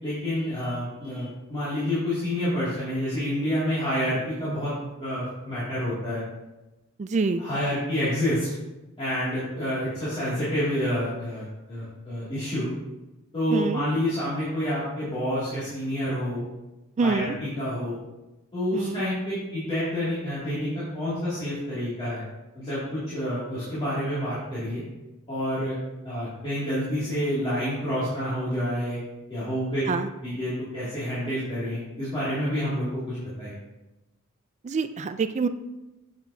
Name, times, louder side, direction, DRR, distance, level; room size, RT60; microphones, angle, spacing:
voice 1, 0.0-4.7 5.0-6.2 7.4-8.5 9.0-12.7 13.3-16.4 17.0-18.0 18.5-19.2 19.5-22.2 22.5-24.8 25.3-25.8 26.0-29.0 29.3-29.8 30.2-33.5, equal, 25° left, -12 dB, 2.4 m, -28 dB
voice 2, 7.0-7.4 13.5-13.8 17.0-17.4 18.7-19.0 29.9-30.1 34.6-35.5, right 4 dB, 30° right, 11 dB, 0.3 m, -26 dB
7.8 x 7.3 x 2.8 m, 1.0 s
head